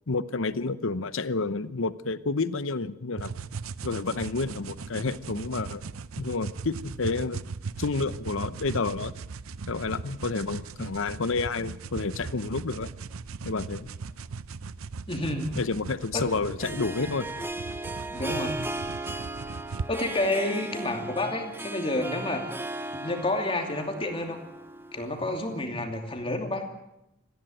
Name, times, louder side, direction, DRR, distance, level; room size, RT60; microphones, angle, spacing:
voice 1, 0.1-3.4 3.8-5.8 6.2-7.4 7.8-9.1 9.7-12.9 13.4-13.9 15.6-17.3, left 3 dB, 65° left, 15 dB, 0.8 m, -30 dB
sound 1, 3.2-19.9, right 4 dB, 75° right, 0.6 m, -38 dB
voice 2, 15.1-15.5 16.1-16.2 18.1-18.6 19.9-22.5 22.9-24.4 24.9-26.6, left 1 dB, 25° left, 4 dB, 2.8 m, -29 dB
Harp, 15.2-25.6, right 2 dB, 10° right, 0.8 m, -37 dB
18.5 x 15.5 x 9.1 m, 0.87 s
head